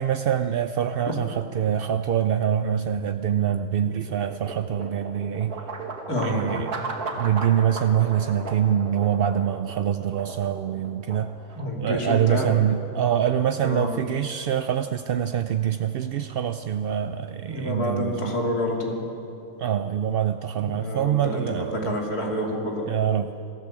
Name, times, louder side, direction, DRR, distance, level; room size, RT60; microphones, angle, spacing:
voice 1, 0.0-5.5 6.2-11.3 11.8-18.4 19.6-22.0 22.9-23.3, right 9 dB, 65° right, 9 dB, 0.5 m, -25 dB
sound 1, 3.2-17.3, right 3 dB, 90° right, 2.3 m, -38 dB
voice 2, 6.1-6.4 11.6-12.5 13.6-13.9 17.3-19.0 20.6-22.9, left 1 dB, 85° left, -1 dB, 3.5 m, -28 dB
25.0 x 14.0 x 7.4 m, 2.7 s
omnidirectional pair, 1.6 m